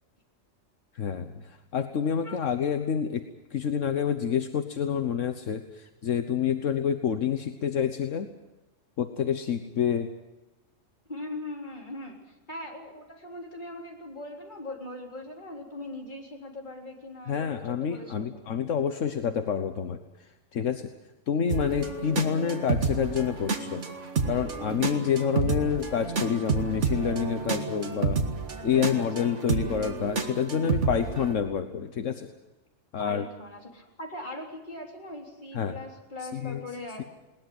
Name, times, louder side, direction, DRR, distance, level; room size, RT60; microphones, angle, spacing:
voice 1, 0.9-3.2 3.5-8.3 9.0-10.1 17.3-20.9 21.3-23.8 24.3-28.2 28.6-32.3 32.9-33.3 35.5-35.8 36.3-36.6, left 7 dB, 75° left, 7 dB, 1.4 m, -28 dB
voice 2, 11.1-18.4 28.7-29.3 33.0-37.0, left 1 dB, 35° left, 0 dB, 3.9 m, -40 dB
sound 1, 21.5-31.3, right 4 dB, 70° right, 2.0 m, -30 dB
21.0 x 19.0 x 7.9 m, 1.1 s
omnidirectional pair, 1.3 m